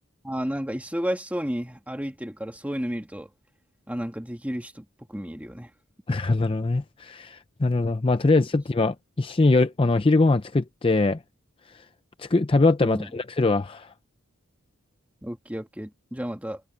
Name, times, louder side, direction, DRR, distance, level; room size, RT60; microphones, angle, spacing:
voice 1, 0.2-3.3 3.9-5.7 12.8-13.1 15.2-16.6, equal, 5° right, 1.8 m, -32 dB
voice 2, 6.1-11.2 11.7-11.9 12.2-13.9, left 3 dB, 25° left, 0.5 m, -22 dB
head